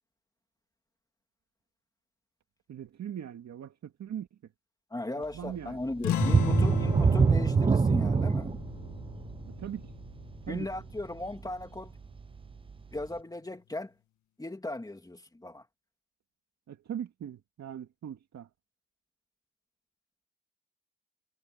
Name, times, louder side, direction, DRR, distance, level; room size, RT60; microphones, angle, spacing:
voice 1, 2.7-4.4 5.2-5.8 9.5-9.9 10.5-10.7 16.7-18.5, right 9 dB, 60° right, 2.6 m, -40 dB
voice 2, 4.9-8.5 10.5-11.9 12.9-13.9 14.4-15.6, left 2 dB, 10° left, 3.0 m, -37 dB
sound 1, 6.0-11.1, left 12 dB, 70° left, 2.0 m, -36 dB
sound 2, 6.1-11.6 12.0-12.2 12.7-12.8, right 5 dB, 20° right, 0.4 m, -25 dB
cardioid pair, 90°, 30 cm